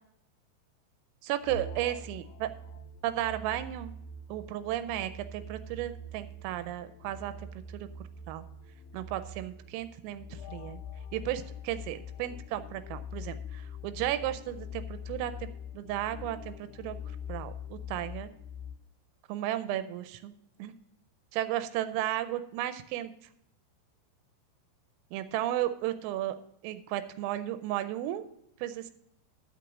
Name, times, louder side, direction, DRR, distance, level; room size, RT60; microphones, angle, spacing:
voice 1, 1.2-2.5 3.0-3.9 4.3-7.3 7.7-7.9 8.3-8.4 8.9-10.8 11.1-15.5 15.7-17.0 17.3-18.3 19.3-20.3 20.6-20.7 21.3-23.1 25.1-26.4 26.6-28.2 28.6-28.9, right 13 dB, 85° right, 10 dB, 3.2 m, -34 dB
sound 1, 1.4-18.8, left 3 dB, 80° left, 2.8 m, -44 dB
12.0 x 6.1 x 5.9 m, 0.76 s
omnidirectional pair, 5.9 m